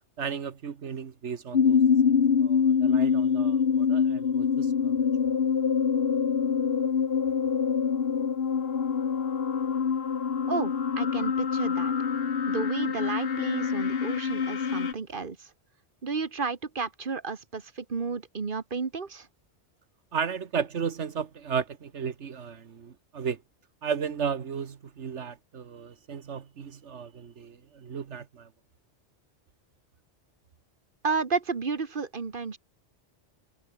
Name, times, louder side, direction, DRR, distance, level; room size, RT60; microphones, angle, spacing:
voice 1, 0.2-1.8 2.1-4.9 20.1-23.4 23.8-28.5, right 6 dB, 85° right, 1.6 m, -34 dB
sound 1, 1.5-14.9, left 6 dB, 60° left, 1.3 m, -25 dB
voice 2, 10.5-11.9 12.5-15.5 16.0-19.3 31.0-32.6, right 4 dB, 50° right, 1.5 m, -32 dB
omnidirectional pair, 1.2 m